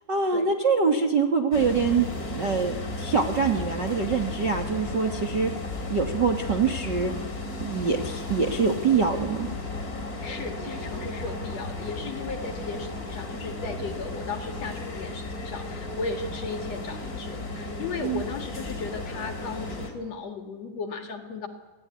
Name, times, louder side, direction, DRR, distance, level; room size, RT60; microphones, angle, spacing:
voice 1, 0.1-5.5 5.9-7.1 7.6-9.5 18.0-18.2, right 5 dB, 45° right, 5 dB, 1.5 m, -24 dB
sound 1, 1.5-19.9, left 2 dB, 25° left, 3.2 m, -34 dB
voice 2, 10.2-21.5, left 4 dB, 50° left, 4 dB, 2.9 m, -36 dB
27.0 x 18.0 x 9.8 m, 1.3 s
omnidirectional pair, 4.3 m